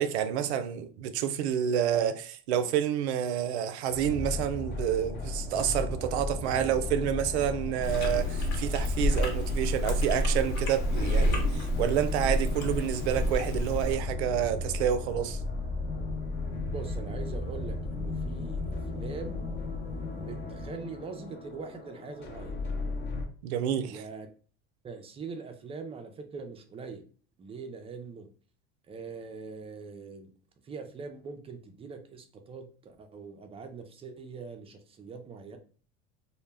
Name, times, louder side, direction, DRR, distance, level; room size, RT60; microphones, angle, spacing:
voice 1, 0.0-15.4 23.4-24.0, right 9 dB, 80° right, 0.5 m, -29 dB
sound 1, 3.9-23.3, left 3 dB, 35° left, 0.6 m, -35 dB
Chewing mastication, 7.8-14.0, equal, 55° left, 1.0 m, -29 dB
voice 2, 16.7-19.4 20.1-22.5 23.9-24.3 24.8-27.0 27.4-28.3 28.9-30.3 30.6-35.6, right 4 dB, 20° right, 0.4 m, -42 dB
2.1 x 2.1 x 3.2 m
supercardioid pair, 100°, 32 cm